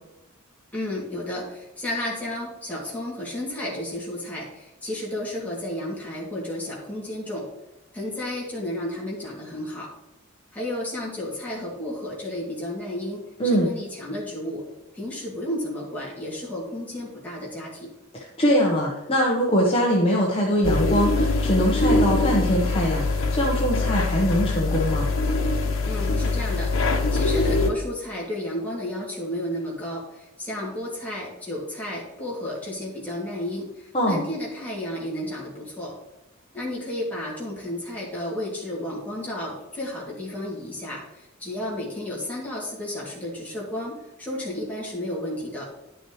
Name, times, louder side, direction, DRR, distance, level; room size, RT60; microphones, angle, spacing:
voice 1, 0.7-7.5 7.9-9.9 10.5-14.7 14.9-17.9 25.8-35.9 36.5-45.7, left 1 dB, 10° left, -5 dB, 2.6 m, -32 dB
voice 2, 18.1-25.1 33.9-34.3, equal, 25° left, -3 dB, 1.2 m, -22 dB
sound 1, 20.6-27.7, left 3 dB, 85° left, 1.0 m, -23 dB
10.5 x 6.3 x 3.2 m, 0.98 s
head